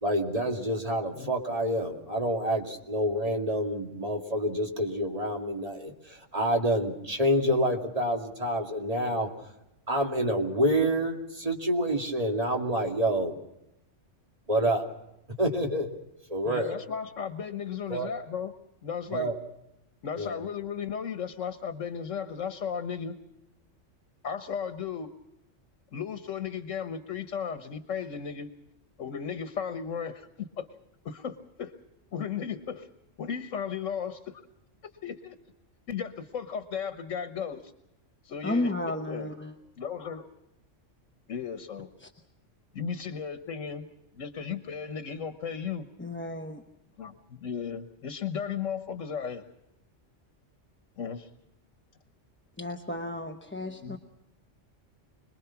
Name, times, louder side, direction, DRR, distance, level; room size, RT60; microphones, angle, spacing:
voice 1, 0.0-9.3 9.9-13.4 14.5-14.9 15.4-15.9 16.3-16.8 17.9-18.1 19.1-19.4 20.2-20.4, equal, 30° right, 2 dB, 2.5 m, -28 dB
voice 2, 16.4-18.5 18.8-19.3 20.0-23.2 24.2-25.1 25.9-28.5 29.0-30.7 31.0-31.7 32.1-32.9 33.2-34.4 35.0-35.4 35.9-37.7 38.2-39.3 39.8-40.3 41.3-41.9 42.7-43.9 44.1-45.9 47.0-49.4 51.0-51.3 53.8-54.0, left 7 dB, 85° left, 9 dB, 1.5 m, -35 dB
voice 3, 38.4-39.5 42.0-42.1 46.0-46.6 52.6-54.0, left 2 dB, 10° left, 4 dB, 0.9 m, -33 dB
26.5 x 21.0 x 5.8 m, 0.87 s
omnidirectional pair, 1.3 m